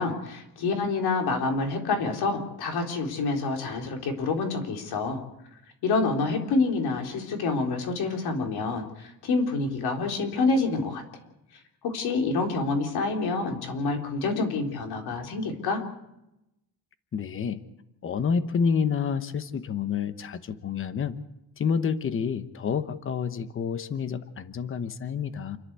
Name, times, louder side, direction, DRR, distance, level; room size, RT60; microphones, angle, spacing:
voice 1, 0.0-5.2 5.8-11.0 11.8-15.8, left 3 dB, 80° left, 3 dB, 4.1 m, -27 dB
voice 2, 17.1-17.6 18.0-21.2 21.6-25.6, left 6 dB, 35° left, 11 dB, 1.1 m, -28 dB
29.0 x 11.0 x 8.3 m, 0.86 s
cardioid pair, 170°, 38 cm